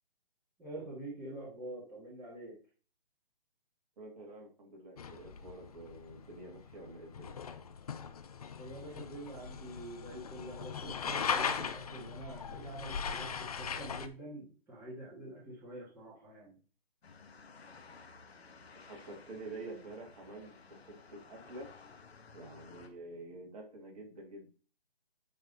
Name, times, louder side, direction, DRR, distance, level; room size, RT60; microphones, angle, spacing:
voice 1, 0.6-2.6 8.6-16.6, right 1 dB, 5° right, -8 dB, 1.8 m, -46 dB
voice 2, 4.0-7.3 18.9-21.7 22.3-24.5, right 2 dB, 35° right, 0 dB, 2.2 m, -48 dB
sound 1, 5.0-14.1, left 6 dB, 35° left, 0.5 m, -39 dB
sound 2, 17.0-22.9, left 4 dB, 75° left, 1.5 m, -55 dB
9.1 x 3.6 x 4.0 m, 0.37 s
hypercardioid pair, 155°, 31 cm